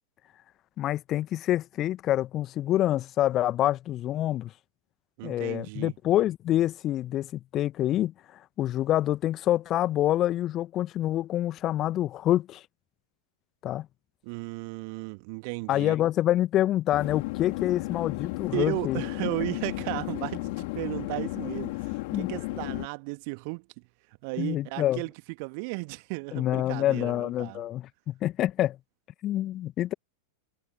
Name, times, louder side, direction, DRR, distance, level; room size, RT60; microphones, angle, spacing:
voice 1, 0.8-4.5 5.2-8.1 8.6-12.6 13.6-13.9 15.7-19.0 22.1-22.3 24.4-25.0 26.3-28.8 29.2-29.9, left 13 dB, 30° left, 1.4 m, -26 dB
voice 2, 5.2-5.9 14.2-16.0 18.5-23.8 24.2-25.1 25.4-27.6, right 33 dB, 45° right, 1.8 m, -35 dB
sound 1, 16.9-22.9, left 24 dB, 50° left, 3.8 m, -34 dB
figure-of-eight pair, 90°, 0 cm